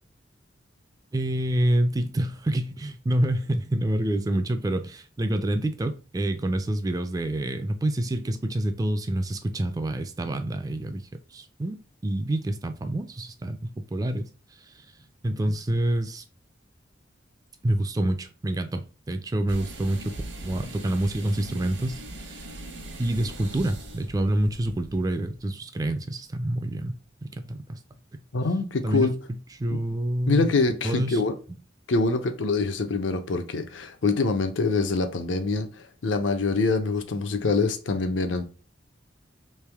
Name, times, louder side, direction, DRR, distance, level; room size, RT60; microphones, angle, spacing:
voice 1, 1.1-11.8 12.0-14.3 14.7-14.8 15.2-16.2 17.6-20.2 20.4-22.5 23.0-27.8 28.1-28.2 28.8-30.5 30.8-31.2, right 1 dB, 20° right, 0.3 m, -27 dB
sound 1, 19.5-25.4, right 1 dB, 70° right, 1.0 m, -40 dB
voice 2, 28.3-29.1 29.7-29.8 30.3-31.3 31.9-38.4, left 3 dB, 80° left, 0.6 m, -25 dB
3.3 x 2.9 x 3.4 m
head